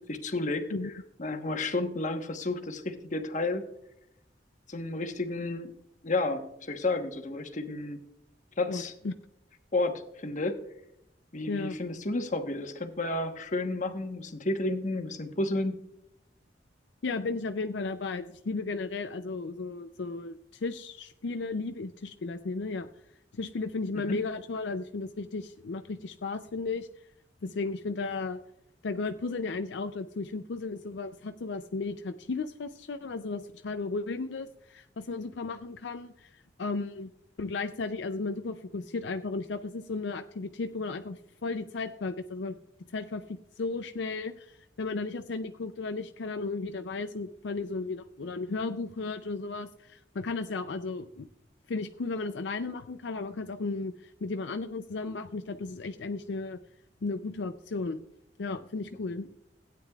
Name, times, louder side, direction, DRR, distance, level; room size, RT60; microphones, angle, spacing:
voice 1, 0.1-0.6 1.2-3.6 4.7-5.7 6.0-8.0 8.6-8.9 9.7-10.6 11.3-15.8 24.1-24.2, left 2 dB, 45° left, 6 dB, 1.1 m, -31 dB
voice 2, 8.7-9.1 11.5-11.8 17.0-22.9 23.3-26.9 27.4-28.4 28.8-37.1 37.4-42.6 42.9-51.3 51.7-56.6 57.0-58.0 58.4-59.3, left 3 dB, 80° left, 8 dB, 0.5 m, -34 dB
16.5 x 9.2 x 2.4 m, 0.81 s
head